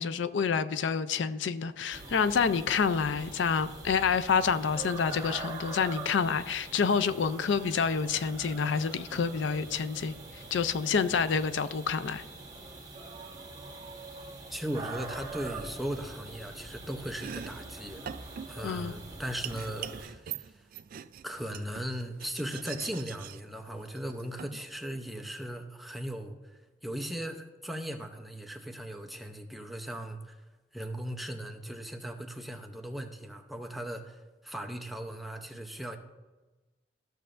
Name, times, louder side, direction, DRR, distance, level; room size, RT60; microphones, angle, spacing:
voice 1, 0.0-12.2 18.6-18.9, left 6 dB, 85° left, 13 dB, 0.4 m, -28 dB
sound 1, 1.9-20.1, right 3 dB, 20° right, 1.5 m, -44 dB
voice 2, 14.5-18.1 18.5-20.6 21.2-26.3 26.8-30.4 30.7-36.0, equal, ahead, 3 dB, 0.6 m, -38 dB
Domestic sounds home sounds, 17.1-25.3, right 9 dB, 50° right, 0.3 m, -44 dB
14.0 x 6.7 x 2.5 m, 1.2 s
head